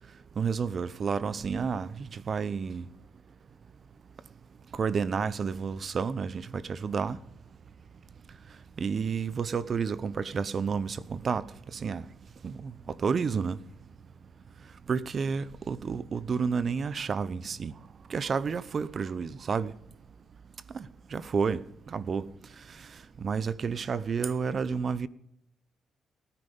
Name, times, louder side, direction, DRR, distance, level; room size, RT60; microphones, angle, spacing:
voice 1, 0.4-2.9 4.7-7.2 8.8-11.5 11.7-12.0 12.4-12.7 13.0-13.6 14.9-17.7 18.1-19.7 20.7-20.9 21.1-22.2 23.2-25.1, right 5 dB, 45° right, 0.8 m, -30 dB
18.5 x 10.0 x 5.3 m
cardioid pair, 90°, 0 cm